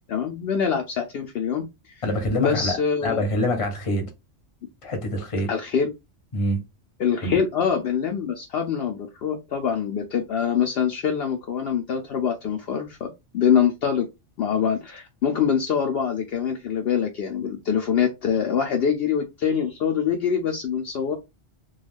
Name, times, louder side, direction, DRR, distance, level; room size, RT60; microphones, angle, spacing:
voice 1, 0.1-2.0 2.4-3.2 5.5-5.9 7.0-13.1 13.3-14.1 14.4-21.2, left 7 dB, 65° left, 0.7 m, -24 dB
voice 2, 2.0-4.1 4.8-5.5 6.3-6.6 7.2-7.4, left 1 dB, 35° left, 0.7 m, -25 dB
2.3 x 2.3 x 3.3 m
omnidirectional pair, 1.2 m